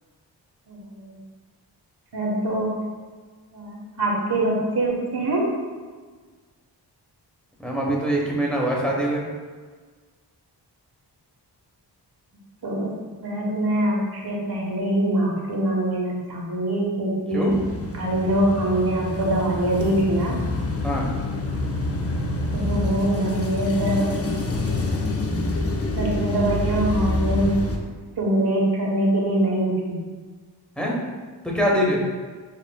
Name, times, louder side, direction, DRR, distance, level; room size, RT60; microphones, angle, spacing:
voice 1, 0.7-1.1 2.1-2.7 3.5-5.5 12.6-12.9 13.2-17.5 17.9-20.4 22.5-24.1 24.8-25.1 26.0-27.5 28.2-30.0, right 1 dB, 60° right, -3 dB, 1.1 m, -23 dB
voice 2, 7.6-9.2 17.3-17.5 20.8-21.1 30.8-31.0 31.4-32.0, equal, ahead, -3 dB, 1.0 m, -23 dB
Old cars passing by, 17.5-27.8, left 2 dB, 35° left, 0.6 m, -27 dB
6.8 x 2.4 x 2.2 m, 1.5 s
cardioid pair, 55°, 43 cm